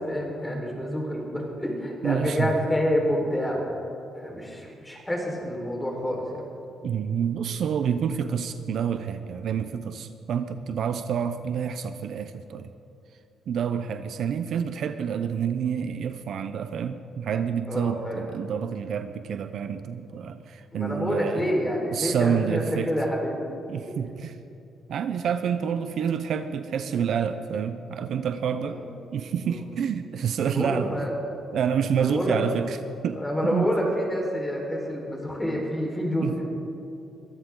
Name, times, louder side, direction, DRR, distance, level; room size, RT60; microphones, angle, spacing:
voice 1, 0.0-3.7 4.1-6.5 17.7-18.2 20.7-23.4 28.7-28.9 29.4-29.7 30.4-31.2 32.0-32.4 33.2-36.5, equal, 10° left, -1 dB, 4.6 m, -28 dB
voice 2, 2.0-2.5 6.8-12.7 13.5-21.5 21.9-22.9 23.7-24.3 24.9-28.8 29.1-30.9 31.5-32.8 33.0-33.7 36.2-36.3, right 7 dB, 65° right, 10 dB, 0.7 m, -28 dB
23.5 x 14.5 x 3.9 m, 2.7 s
cardioid pair, 90°, 0 cm